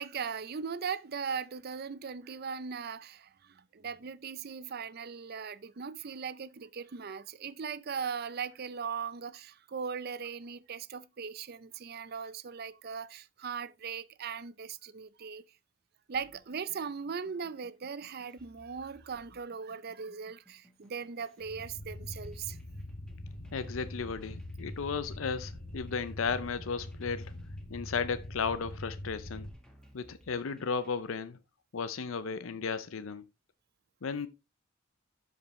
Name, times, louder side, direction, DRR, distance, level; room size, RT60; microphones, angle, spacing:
voice 1, 0.0-15.4 16.1-22.6, right 6 dB, 50° right, 0.5 m, -39 dB
sound 1, 16.1-31.1, equal, 5° left, 1.6 m, -60 dB
sound 2, 21.4-29.5, left 1 dB, 45° left, 2.5 m, -43 dB
voice 2, 23.5-27.3 27.7-29.5 29.9-31.4 31.7-33.2 34.0-34.3, left 5 dB, 85° left, 0.6 m, -34 dB
12.0 x 5.0 x 3.1 m
head